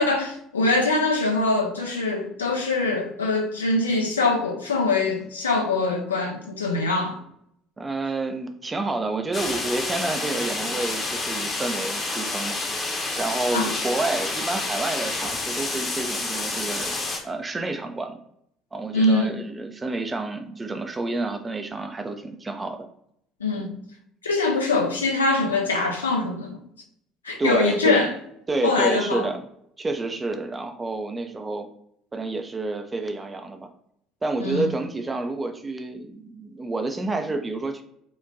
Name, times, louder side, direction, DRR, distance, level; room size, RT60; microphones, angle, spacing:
voice 1, 0.0-7.2 13.5-13.7 18.9-19.4 23.4-23.7 24.2-26.6 27.2-28.1 28.6-29.3 34.4-34.7, left 3 dB, 80° left, 0.5 m, -23 dB
voice 2, 7.8-12.9 13.2-17.0 17.2-18.2 18.7-22.9 23.5-23.6 27.4-28.1 28.5-29.4 29.8-31.7 32.1-33.7 34.2-37.8, right 2 dB, 20° right, 0.4 m, -29 dB
sound 1, 9.3-17.2, left 2 dB, 40° left, 0.9 m, -29 dB
4.9 x 2.2 x 2.5 m
figure-of-eight pair, 60°, 0 cm